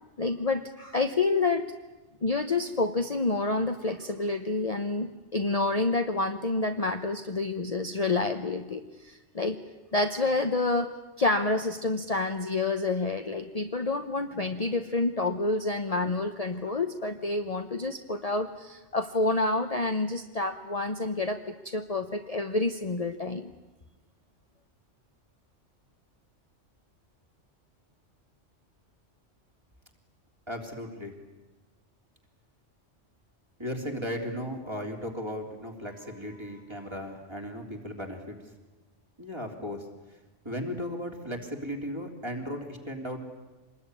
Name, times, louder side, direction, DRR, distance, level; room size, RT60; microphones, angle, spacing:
voice 1, 0.2-1.6 2.2-9.6 9.9-23.5, left 3 dB, 35° left, 6 dB, 1.0 m, -28 dB
voice 2, 30.5-31.2 33.6-38.4 39.2-39.9 40.4-43.2, equal, 20° right, 2 dB, 3.5 m, -36 dB
26.0 x 20.5 x 9.9 m, 1.1 s
omnidirectional pair, 1.3 m